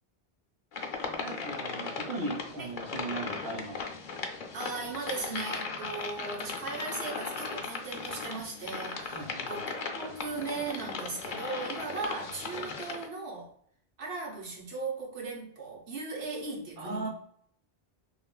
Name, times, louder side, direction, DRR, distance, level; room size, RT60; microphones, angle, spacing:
sound 1, 0.7-13.1, left 4 dB, 60° left, 0.6 m, -37 dB
voice 1, 1.2-3.8 9.1-9.5 16.8-17.1, right 2 dB, 65° right, 1.0 m, -37 dB
voice 2, 4.5-13.5 14.0-17.1, right 3 dB, 90° right, 1.1 m, -38 dB
3.2 x 2.4 x 2.2 m
omnidirectional pair, 1.1 m